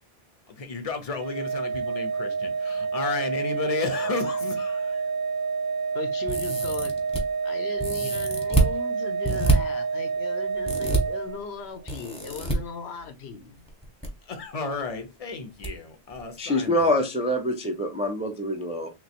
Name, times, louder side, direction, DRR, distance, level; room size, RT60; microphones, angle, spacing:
voice 1, 0.5-5.1 14.3-16.9, left 4 dB, 40° left, 0.7 m, -33 dB
Organ, 1.2-11.9, right 5 dB, 60° right, 0.6 m, -29 dB
voice 2, 5.9-6.9 7.4-13.6, left 5 dB, 75° left, 0.9 m, -38 dB
sound 1, 6.3-7.2 7.8-8.7 9.2-9.5 10.6-11.0 11.9-12.5 13.7-14.1 14.3-14.4 15.6-15.7 16.1-16.2, right 2 dB, 5° left, 0.8 m, -25 dB
voice 3, 16.4-18.9, left 1 dB, 10° right, 0.3 m, -25 dB
3.1 x 2.3 x 4.2 m
omnidirectional pair, 1.1 m